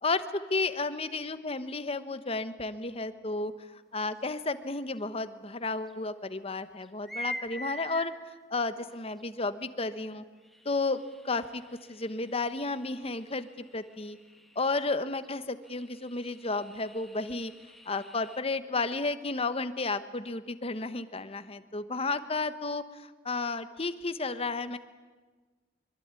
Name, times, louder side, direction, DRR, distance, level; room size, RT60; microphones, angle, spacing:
voice 1, 0.0-8.1 8.5-10.2 10.6-11.6 11.9-14.2 14.5-17.5 17.9-24.8, left 3 dB, 30° left, 11 dB, 1.1 m, -32 dB
sound 1, 5.0-5.1 5.9-6.0 6.8-8.0 9.2-9.3 10.4-14.7 15.2-15.3 15.6-18.4, left 1 dB, ahead, 1.6 m, -45 dB
24.5 x 23.5 x 9.7 m, 1.3 s
head